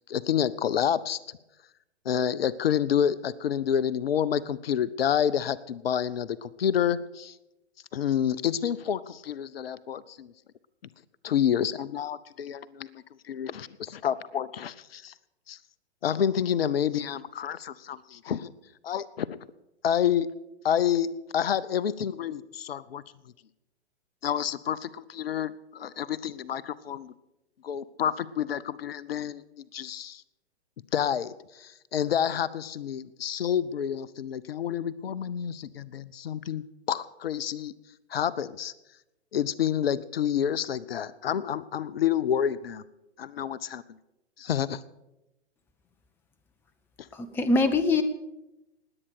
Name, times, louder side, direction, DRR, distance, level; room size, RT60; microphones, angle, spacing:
voice 1, 0.1-1.4 2.0-7.3 7.9-10.3 11.2-15.1 15.5-15.6 16.0-18.5 18.8-19.4 19.8-20.3 20.6-23.0 24.2-27.1 27.6-30.2 30.9-37.7 38.1-38.7 39.3-42.8 43.2-43.8 44.4-44.8 47.0-47.1, left 9 dB, 60° left, 19 dB, 0.7 m, -29 dB
voice 2, 47.1-48.0, left 3 dB, 5° left, 12 dB, 0.6 m, -23 dB
19.5 x 8.8 x 6.6 m, 0.94 s
figure-of-eight pair, 115°, 34 cm